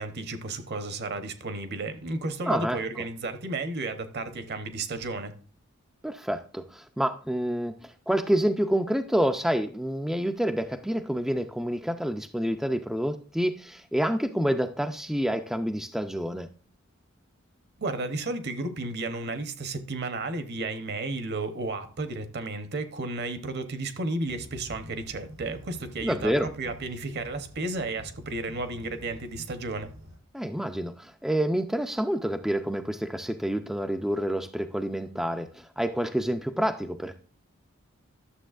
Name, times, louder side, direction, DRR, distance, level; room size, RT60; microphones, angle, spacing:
voice 1, 0.0-5.3 17.8-29.9, right 2 dB, 55° right, 0.9 m, -33 dB
voice 2, 2.5-2.8 6.0-16.5 26.0-26.5 30.3-37.2, equal, ahead, 0.3 m, -28 dB
sound 1, 24.3-30.2, equal, 85° right, 3.7 m, -47 dB
11.5 x 7.0 x 2.4 m
head